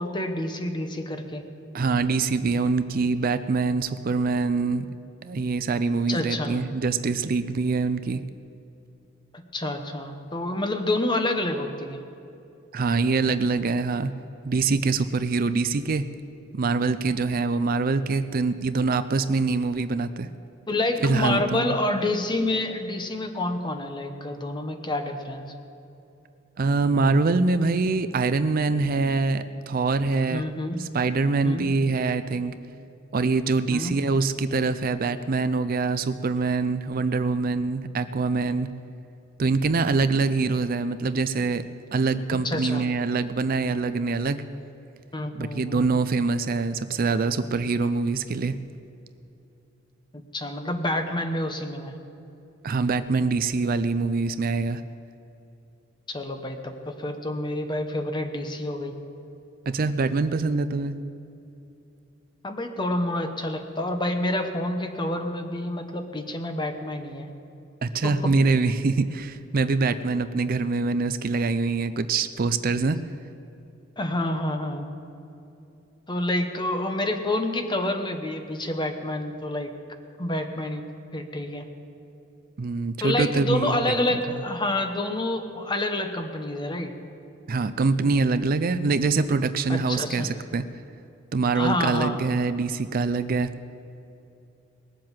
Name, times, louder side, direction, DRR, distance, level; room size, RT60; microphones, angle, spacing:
voice 1, 0.0-1.4 6.1-6.6 9.3-12.0 20.7-25.5 30.3-30.8 31.4-31.7 33.7-33.9 42.4-42.8 45.1-45.9 50.1-51.9 56.1-59.0 62.4-67.3 68.0-68.3 74.0-74.9 76.1-79.7 80.2-80.8 81.1-81.7 83.0-86.9 89.7-90.3 91.5-92.2, left 1 dB, 25° left, 6 dB, 1.1 m, -28 dB
voice 2, 1.7-4.9 5.2-8.2 12.7-14.1 14.4-16.0 16.5-20.3 21.0-21.7 26.6-30.4 30.8-32.5 33.1-38.7 39.4-41.6 41.9-44.4 45.3-48.5 52.6-54.8 59.7-61.0 67.8-73.0 82.6-83.9 87.5-90.6 91.3-93.5, right 4 dB, 45° right, 12 dB, 0.5 m, -24 dB
19.5 x 7.6 x 7.4 m, 2.8 s
head